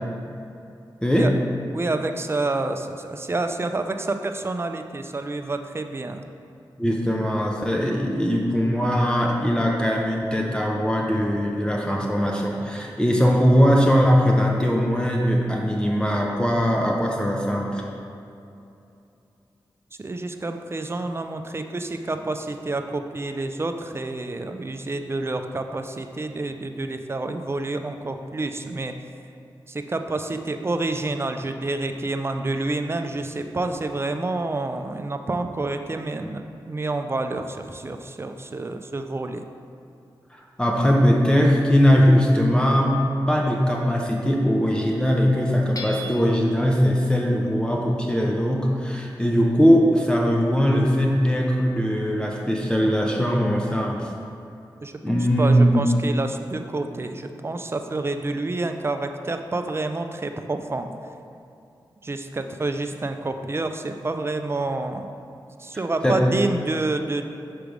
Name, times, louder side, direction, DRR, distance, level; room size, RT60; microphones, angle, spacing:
voice 1, 1.7-6.2 20.0-28.9 29.7-39.4 54.8-60.9 62.0-65.1 65.6-67.3, right 2 dB, 30° right, 7 dB, 0.4 m, -28 dB
voice 2, 6.8-17.9 40.3-54.1 55.0-55.8 66.0-66.2, equal, 10° left, -1 dB, 0.7 m, -20 dB
Hammer / Chink clink, 45.7-46.5, equal, 45° left, 0.8 m, -36 dB
5.9 x 3.3 x 5.1 m, 2.6 s
cardioid pair, 55°, 8 cm